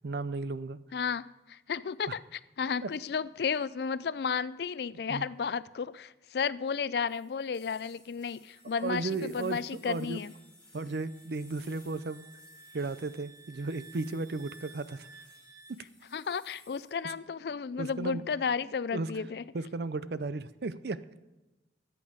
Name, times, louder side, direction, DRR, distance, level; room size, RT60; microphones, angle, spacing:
voice 1, 0.0-0.8 2.1-2.2 2.8-2.9 5.1-5.3 8.8-10.2 10.7-12.2 12.7-15.1 17.8-18.3 18.9-19.1 19.5-21.0, right 3 dB, 70° right, 15 dB, 0.5 m, -35 dB
voice 2, 0.9-10.3 16.1-19.4, left 6 dB, 70° left, 17 dB, 0.4 m, -33 dB
sound 1, 7.1-16.9, left 2 dB, 5° left, 4.6 m, -59 dB
Wind instrument woodwind instrument, 8.5-15.8, right 3 dB, 20° right, 0.7 m, -57 dB
14.0 x 8.5 x 5.0 m, 1.1 s
head